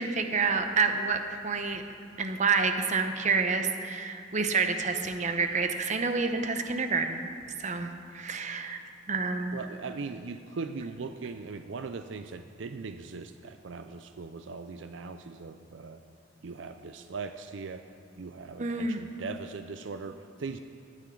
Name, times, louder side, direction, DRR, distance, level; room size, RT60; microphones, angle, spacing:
voice 1, 0.0-1.8 2.2-7.3 7.6-8.8 9.1-9.6 18.6-19.0, right 4 dB, 40° right, 6 dB, 0.9 m, -28 dB
voice 2, 9.5-16.0 16.4-17.9 18.2-20.6, right 4 dB, 80° right, 9 dB, 0.5 m, -39 dB
19.0 x 10.0 x 3.8 m, 2.4 s
head